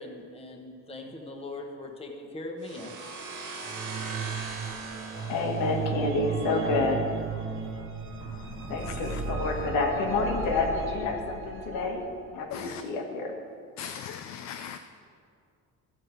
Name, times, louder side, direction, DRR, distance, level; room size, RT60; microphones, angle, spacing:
voice 1, 0.0-2.9, left 2 dB, 20° left, 1.2 m, -40 dB
sound 1, 2.6-6.3, right 3 dB, 75° right, 1.8 m, -40 dB
sound 2, 3.7-12.0, right 5 dB, 40° right, 1.0 m, -35 dB
voice 2, 5.3-7.1 8.7-12.1 12.3-13.3, left 3 dB, 90° left, 1.6 m, -28 dB
voice 3, 8.2-9.2 12.5-12.8 13.8-14.8, left 8 dB, 60° left, 0.5 m, -40 dB
14.5 x 6.6 x 4.5 m
cardioid pair, 140°, 32 cm